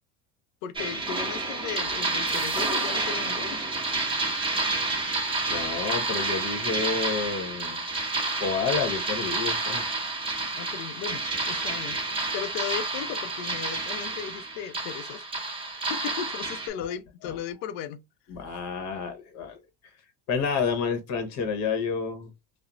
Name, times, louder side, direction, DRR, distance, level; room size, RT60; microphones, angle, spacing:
voice 1, 0.6-3.6 10.5-12.0 12.3-15.3 15.8-18.0, left 9 dB, 75° left, 0.5 m, -36 dB
sound 1, 0.8-16.7, right 3 dB, 15° right, 0.8 m, -29 dB
voice 2, 5.5-7.8 8.4-9.9 16.8-16.9 17.2-17.4 18.3-19.6 20.3-22.3, left 5 dB, 50° left, 0.9 m, -29 dB
2.4 x 2.0 x 2.9 m
supercardioid pair, 115°, 36 cm